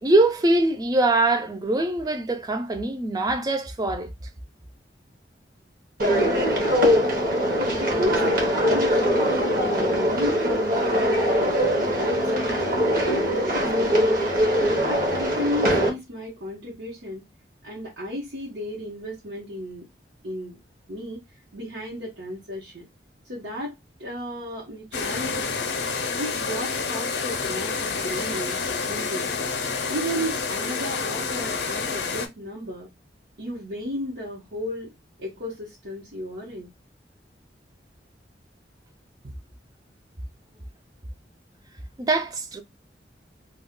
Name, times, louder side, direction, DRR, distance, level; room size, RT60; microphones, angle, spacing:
voice 1, 0.0-4.1 42.0-42.6, right 2 dB, 20° right, 0.4 m, -23 dB
sound 1, 6.0-15.9, equal, 50° right, 0.9 m, -22 dB
voice 2, 7.6-11.5 11.9-14.0 14.6-17.2 17.6-19.9 20.2-20.6 20.9-21.2 21.5-22.9 23.2-25.6 26.2-28.6 28.9-29.4 29.9-32.9 33.4-34.9 35.2-36.7, equal, 75° right, 1.0 m, -34 dB
sound 2, 24.9-32.3, left 4 dB, 65° left, 0.5 m, -28 dB
2.3 x 2.2 x 3.6 m
head